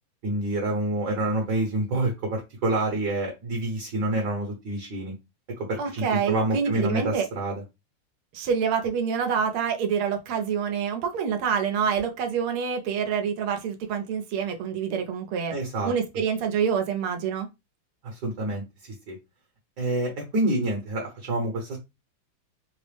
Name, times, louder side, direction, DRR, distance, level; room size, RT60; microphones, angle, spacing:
voice 1, 0.2-5.1 5.6-7.6 15.5-15.9 18.0-18.6 19.1-19.2 19.8-21.8, right 1 dB, 60° right, 1.3 m, -27 dB
voice 2, 5.8-7.3 8.3-15.5 15.8-17.5, right 7 dB, 85° right, 1.5 m, -26 dB
3.8 x 2.0 x 3.2 m
omnidirectional pair, 2.4 m